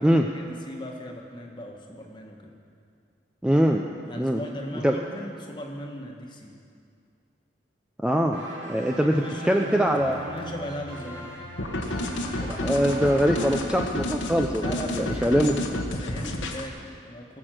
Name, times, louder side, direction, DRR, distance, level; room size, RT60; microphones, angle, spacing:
voice 1, 0.0-2.5 4.1-6.5 9.0-11.5 14.6-17.4, equal, 25° left, 1 dB, 1.4 m, -38 dB
voice 2, 3.4-3.9 4.2-4.4 4.8-5.0 8.0-8.4 8.7-10.2 12.5-15.5, equal, 5° right, 2 dB, 0.4 m, -23 dB
sound 1, 8.3-13.6, equal, 75° right, 2.1 m, -39 dB
sound 2, 11.6-16.7, left 1 dB, 90° left, 1.2 m, -30 dB
18.0 x 6.2 x 7.7 m, 2.4 s
head